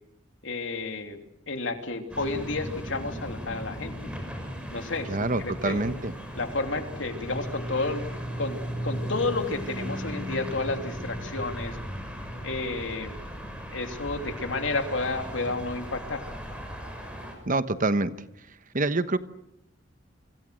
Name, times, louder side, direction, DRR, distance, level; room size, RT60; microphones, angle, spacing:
voice 1, 0.4-1.2 1.5-3.9 4.7-5.8 6.3-8.0 8.4-8.6 8.8-11.8 12.4-16.2, left 3 dB, 75° left, 6 dB, 3.2 m, -31 dB
sound 1, 2.1-17.3, equal, 5° right, 6.2 m, -36 dB
voice 2, 5.1-6.1 17.5-18.1 18.7-19.2, right 2 dB, 45° right, 12 dB, 1.1 m, -26 dB
29.5 x 25.5 x 6.4 m, 0.82 s
head